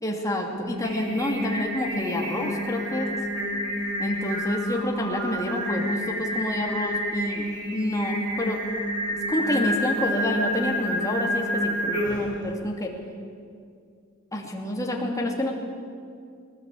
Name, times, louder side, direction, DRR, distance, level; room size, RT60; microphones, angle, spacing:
voice 1, 0.0-3.1 4.0-7.5 7.7-8.6 9.3-12.9 14.3-15.5, left 1 dB, 15° left, 0 dB, 2.6 m, -28 dB
Singing, 0.6-12.4, equal, 55° right, 7.8 m, -29 dB
20.0 x 18.5 x 8.6 m, 2.3 s
head